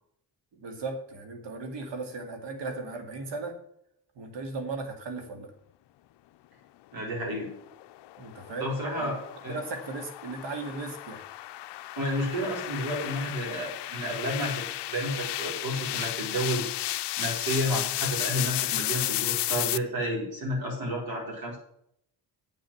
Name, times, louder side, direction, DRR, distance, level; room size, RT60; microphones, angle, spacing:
voice 1, 0.5-3.6 4.2-5.5 8.2-8.7 9.0-9.1 9.5-11.2, right 3 dB, 85° right, 5 dB, 2.4 m, -36 dB
voice 2, 6.9-7.5 8.6-9.6 12.0-16.7 17.2-21.6, equal, 60° right, -3 dB, 4.7 m, -31 dB
sound 1, 7.7-19.8, left 16 dB, 75° left, 0.6 m, -33 dB
8.5 x 7.8 x 7.2 m, 0.73 s
cardioid pair, 125°, 42 cm